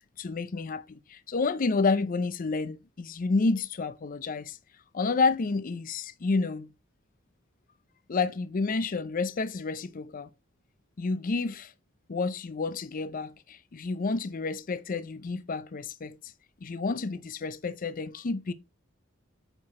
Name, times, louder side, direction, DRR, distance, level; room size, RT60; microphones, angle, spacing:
voice 1, 0.2-4.6 4.9-6.7 8.1-10.3 11.0-11.7 12.1-16.3 16.6-18.5, left 4 dB, 40° left, 0.5 m, -30 dB
8.8 x 4.7 x 4.2 m
head